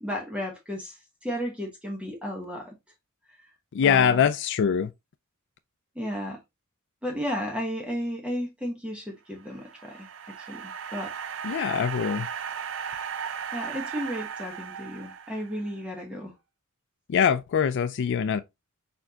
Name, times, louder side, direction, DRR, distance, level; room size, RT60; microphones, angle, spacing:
voice 1, 0.0-2.7 3.8-4.2 5.9-6.4 7.0-10.1 10.4-11.1 13.5-16.3, equal, 5° right, 1.0 m, -33 dB
voice 2, 3.7-4.9 11.4-12.3 17.1-18.4, left 7 dB, 55° left, 0.3 m, -23 dB
sound 1, 9.4-15.8, right 7 dB, 60° right, 0.6 m, -36 dB
4.4 x 4.3 x 2.8 m
head